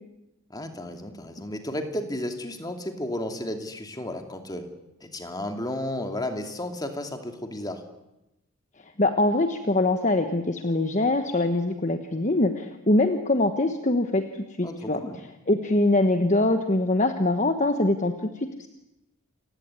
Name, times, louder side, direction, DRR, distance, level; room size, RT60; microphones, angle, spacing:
voice 1, 0.5-4.6 5.0-7.8 14.6-15.1, left 1 dB, 20° left, 5 dB, 2.7 m, -33 dB
voice 2, 9.0-15.0 15.5-18.7, left 2 dB, 35° left, 7 dB, 1.2 m, -23 dB
28.5 x 16.5 x 9.7 m, 0.91 s
head